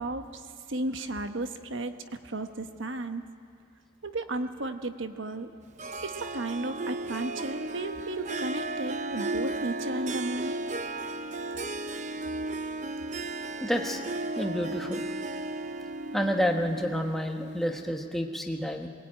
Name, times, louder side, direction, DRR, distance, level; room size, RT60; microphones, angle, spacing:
voice 1, 0.0-2.0 2.2-3.2 4.0-5.5 6.0-10.6, right 2 dB, 65° right, 7 dB, 1.2 m, -34 dB
Harp, 5.8-18.0, right 2 dB, 35° right, 0.6 m, -35 dB
voice 2, 13.6-14.0 14.4-15.1 16.1-18.9, equal, ahead, 2 dB, 1.3 m, -29 dB
22.5 x 20.0 x 8.7 m, 2.4 s
head